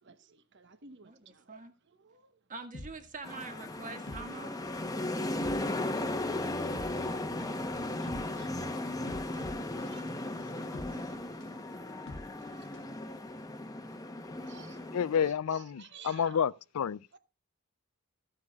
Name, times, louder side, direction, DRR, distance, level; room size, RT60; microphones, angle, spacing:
voice 1, 0.0-2.3 8.0-11.6 11.9-13.2 13.9-14.0 14.4-14.9 15.2-16.4 17.1-17.2, right 6 dB, 55° right, 1.0 m, -55 dB
voice 2, 2.5-4.6, right 3 dB, 35° right, 1.8 m, -44 dB
sound 1, 2.7-13.0 13.2-13.3, left 2 dB, 60° left, 1.1 m, -48 dB
sound 2, 3.2-15.3, left 2 dB, 15° left, 0.9 m, -36 dB
voice 3, 14.9-15.7 16.0-17.0, left 7 dB, 85° left, 0.4 m, -29 dB
15.0 x 9.7 x 2.4 m
head